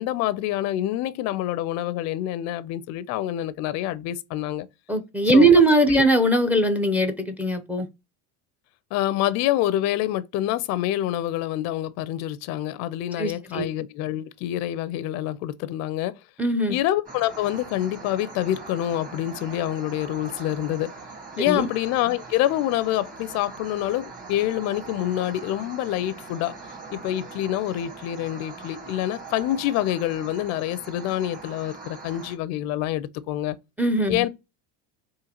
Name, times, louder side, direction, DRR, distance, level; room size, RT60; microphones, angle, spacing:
voice 1, 0.0-4.7 5.3-5.5 5.9-6.0 8.9-16.2 16.7-20.9 21.4-26.6 26.9-33.6 34.1-34.3, left 13 dB, 50° left, 0.4 m, -26 dB
voice 2, 4.9-7.9 13.2-13.7 16.4-16.8 21.4-21.7 33.8-34.2, right 2 dB, 5° right, 0.5 m, -20 dB
sound 1, 17.1-32.4, right 3 dB, 25° right, 1.5 m, -41 dB
3.8 x 2.5 x 2.9 m
supercardioid pair, 110°, 34 cm